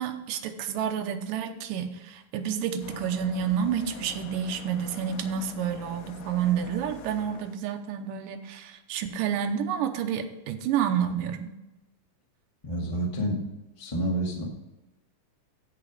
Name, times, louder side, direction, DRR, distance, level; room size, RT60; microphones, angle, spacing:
voice 1, 0.0-11.5, right 8 dB, 80° right, 7 dB, 2.4 m, -29 dB
sound 1, 2.8-7.6, left 8 dB, 80° left, 2.5 m, -45 dB
voice 2, 12.6-13.4 13.8-14.4, right 1 dB, 20° left, -2 dB, 0.9 m, -29 dB
14.5 x 4.9 x 5.0 m, 1.0 s
omnidirectional pair, 4.0 m